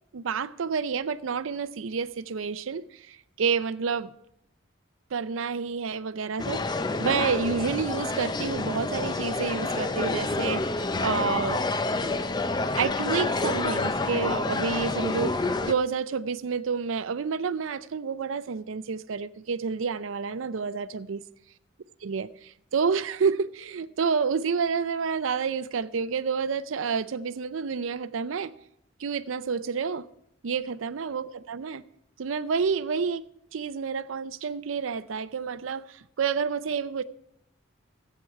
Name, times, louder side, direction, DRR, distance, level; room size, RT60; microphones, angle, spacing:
voice 1, 0.1-4.1 5.1-11.6 12.8-21.2 22.0-28.5 29.0-30.1 30.4-31.8 32.2-37.0, right 5 dB, 85° right, 0.5 m, -29 dB
sound 1, 6.4-15.7, left 3 dB, 20° left, 0.4 m, -28 dB
14.5 x 8.4 x 4.6 m
head